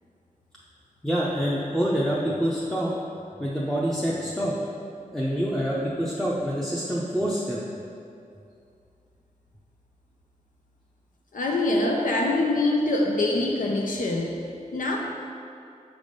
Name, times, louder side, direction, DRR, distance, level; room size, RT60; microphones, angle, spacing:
voice 1, 1.0-2.9 3.4-4.5 5.1-7.6, equal, 5° left, -7 dB, 0.6 m, -26 dB
voice 2, 11.3-15.0, left 2 dB, 75° left, 0 dB, 0.6 m, -24 dB
6.3 x 3.4 x 5.3 m, 2.5 s
wide cardioid pair, 105°, 14 cm